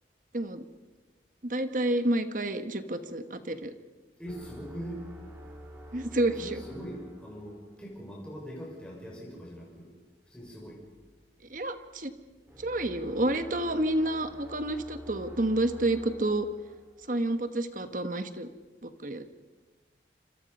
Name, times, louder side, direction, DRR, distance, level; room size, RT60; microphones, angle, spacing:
voice 1, 1.4-3.7 5.9-6.6 11.5-12.1 12.6-16.5 17.1-18.5 18.8-19.2, right 1 dB, 45° right, 9 dB, 1.4 m, -29 dB
voice 2, 4.2-5.0 6.3-10.0 10.3-10.8, equal, 5° left, -3 dB, 5.7 m, -42 dB
sound 1, 4.2-8.0 12.5-17.3, equal, 15° right, 3.8 m, -48 dB
27.5 x 26.0 x 5.5 m, 1.3 s
head